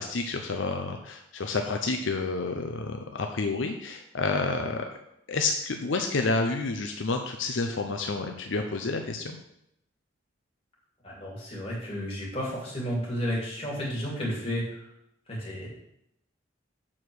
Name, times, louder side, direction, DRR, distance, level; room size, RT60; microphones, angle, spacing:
voice 1, 0.0-4.9 5.3-9.4, left 3 dB, 80° left, 4 dB, 0.7 m, -29 dB
voice 2, 11.0-14.8 15.3-15.7, equal, 30° left, -5 dB, 2.7 m, -32 dB
7.3 x 4.8 x 6.3 m, 0.80 s
head